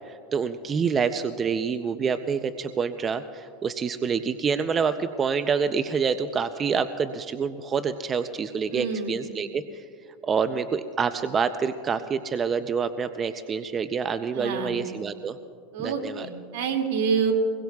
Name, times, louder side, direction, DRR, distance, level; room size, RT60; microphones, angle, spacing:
voice 1, 0.1-9.6 10.2-15.4 15.8-16.3, right 6 dB, 25° right, 10 dB, 0.5 m, -27 dB
voice 2, 8.7-9.1 14.3-14.8 15.7-17.3, right 6 dB, 75° right, 3 dB, 2.3 m, -27 dB
25.0 x 21.0 x 2.3 m, 2.5 s
supercardioid pair, 125°, 0 cm